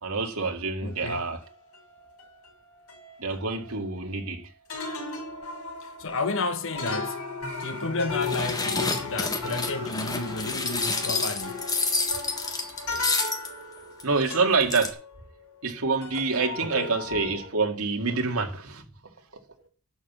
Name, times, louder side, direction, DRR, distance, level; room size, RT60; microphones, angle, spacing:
voice 1, 0.0-1.4 3.2-4.5 12.9-13.1 14.0-15.0 15.6-18.8 19.6-19.7, right 4 dB, 75° right, 2.1 m, -27 dB
voice 2, 0.8-1.3 5.8-7.2 7.6-11.7 16.6-16.9, left 3 dB, 60° left, 1.2 m, -32 dB
sound 1, 0.9-4.4 4.7-15.7 16.0-17.5, left 3 dB, 80° left, 5.0 m, -37 dB
sound 2, 8.2-13.5 14.0-14.1 14.3-14.4 14.6-14.9, left 3 dB, 15° left, 1.5 m, -29 dB
11.5 x 5.9 x 7.3 m
head